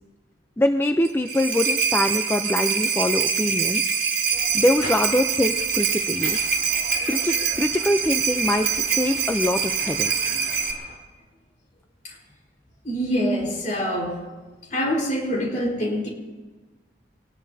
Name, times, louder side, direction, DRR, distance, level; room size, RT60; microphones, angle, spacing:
voice 1, 0.6-4.0 4.5-6.4 7.1-10.1, left 1 dB, 10° left, 6 dB, 0.5 m, -24 dB
sound 1, 1.0-10.7, right 6 dB, 50° right, 2.9 m, -24 dB
sound 2, 4.3-11.0, left 1 dB, 80° left, 3.6 m, -41 dB
voice 2, 12.8-14.2 14.7-16.1, equal, 45° left, -1 dB, 4.4 m, -25 dB
24.5 x 19.5 x 2.8 m, 1.3 s
head